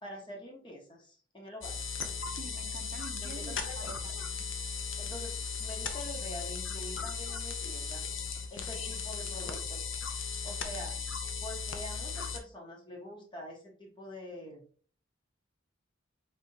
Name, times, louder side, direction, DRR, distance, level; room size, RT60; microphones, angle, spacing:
voice 1, 0.0-1.8 3.2-3.9 5.0-8.1 8.5-9.9 10.4-11.0 11.4-14.7, left 1 dB, 25° left, 1.3 m, -45 dB
sound 1, 1.6-12.4, left 5 dB, 85° left, 0.7 m, -37 dB
voice 2, 2.4-4.5, right 4 dB, 50° right, 0.5 m, -48 dB
4.9 x 3.6 x 2.8 m
head